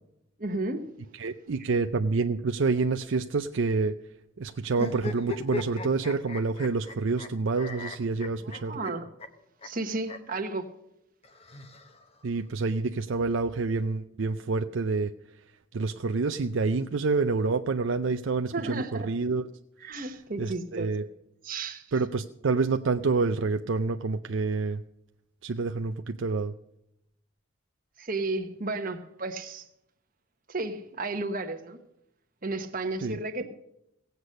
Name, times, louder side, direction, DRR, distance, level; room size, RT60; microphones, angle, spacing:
voice 1, 0.4-0.9 8.4-9.1 9.6-10.7 18.5-19.1 19.8-20.9 21.4-21.9 28.0-29.7 30.5-31.8 32.4-33.5, right 2 dB, 40° right, 1.2 m, -33 dB
voice 2, 1.1-3.9 4.4-8.8 12.2-15.4 15.7-19.5 19.8-20.0 20.4-21.1 21.9-24.8 25.4-26.5 33.0-33.2, right 4 dB, 65° right, 0.5 m, -28 dB
sound 1, 4.7-7.3 7.6-8.9 9.2-9.3 9.6-9.7 10.0-10.2 11.2-12.2, left 3 dB, 30° left, 1.0 m, -38 dB
17.0 x 8.1 x 6.5 m
head